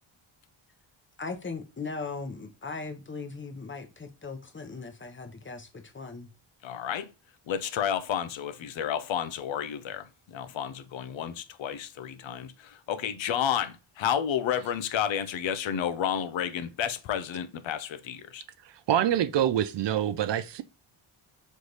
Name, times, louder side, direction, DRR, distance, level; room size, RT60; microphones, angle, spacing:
voice 1, 1.2-6.3, left 4 dB, 25° left, 0.8 m, -38 dB
voice 2, 6.6-7.1 7.5-18.4, left 9 dB, 65° left, 0.6 m, -31 dB
voice 3, 18.6-20.6, right 10 dB, 60° right, 0.5 m, -26 dB
3.3 x 3.2 x 3.8 m
cardioid pair, 100°, 49 cm